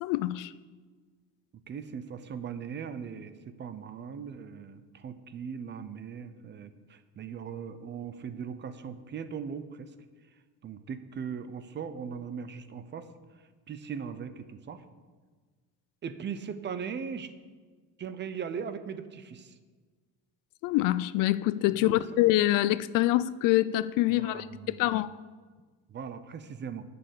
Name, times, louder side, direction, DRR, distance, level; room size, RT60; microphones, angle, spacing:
voice 1, 0.0-0.5 20.6-25.2, left 15 dB, 65° left, 0.5 m, -25 dB
voice 2, 1.7-9.9 10.6-13.1 13.7-14.8 16.0-17.3 18.0-19.5 21.8-21.9 24.1-24.8 25.9-26.8, right 7 dB, 30° right, 0.8 m, -39 dB
11.5 x 6.9 x 8.4 m
cardioid pair, 140°, 35 cm